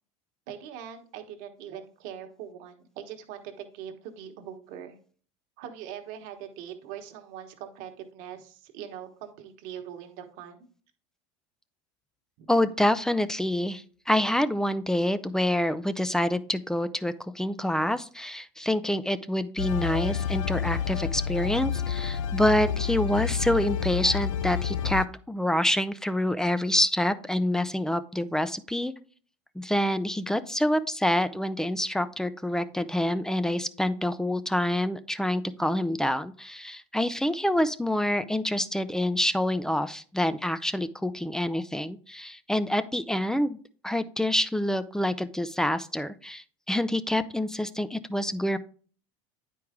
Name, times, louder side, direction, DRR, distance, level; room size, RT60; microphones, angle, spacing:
voice 1, 0.5-5.0 5.6-10.7 12.4-12.5, right 9 dB, 65° right, 5 dB, 1.2 m, -42 dB
voice 2, 12.5-28.9 29.6-43.6 43.8-48.6, left 1 dB, 5° left, 13 dB, 0.5 m, -27 dB
sound 1, 19.6-25.1, left 8 dB, 90° left, 0.5 m, -29 dB
9.3 x 4.7 x 3.6 m, 0.43 s
hypercardioid pair, 95°, 16 cm